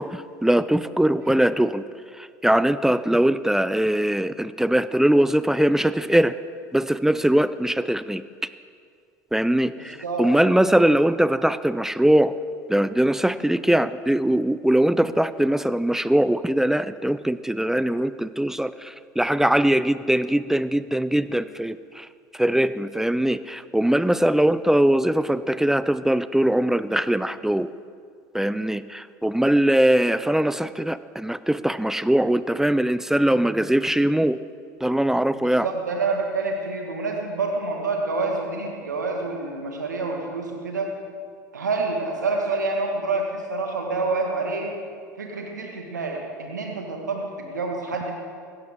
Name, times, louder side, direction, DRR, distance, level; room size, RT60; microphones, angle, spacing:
voice 1, 0.0-1.8 2.2-6.3 6.7-8.2 9.3-12.3 12.7-22.1 22.3-27.7 28.3-34.4 34.8-35.7, right 1 dB, 5° right, 15 dB, 0.4 m, -21 dB
voice 2, 9.8-10.2 35.3-40.9 41.5-44.7 45.2-48.1, right 3 dB, 90° right, 1 dB, 1.8 m, -27 dB
16.5 x 13.5 x 3.8 m, 2.2 s
hypercardioid pair, 75°, 9 cm